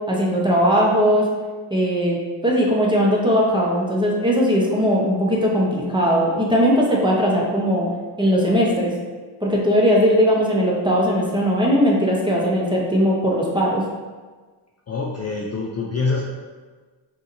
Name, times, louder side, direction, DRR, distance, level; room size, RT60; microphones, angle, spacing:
voice 1, 0.1-1.3 1.7-7.9 8.2-8.9 9.4-13.8, equal, 10° right, -3 dB, 0.6 m, -19 dB
voice 2, 14.9-16.2, left 4 dB, 35° left, -2 dB, 0.4 m, -25 dB
5.3 x 3.0 x 2.5 m, 1.4 s
wide cardioid pair, 125°, 47 cm